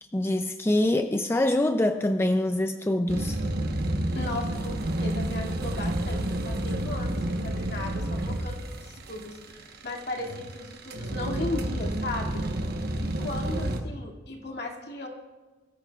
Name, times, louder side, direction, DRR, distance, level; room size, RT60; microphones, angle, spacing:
voice 1, 0.1-3.4, left 1 dB, 15° left, 6 dB, 0.4 m, -25 dB
sound 1, 3.1-13.8, right 1 dB, 55° right, 1.1 m, -30 dB
voice 2, 4.1-12.4 13.0-15.1, left 2 dB, 60° left, 0 dB, 2.3 m, -36 dB
22.5 x 14.0 x 2.4 m, 1.2 s
head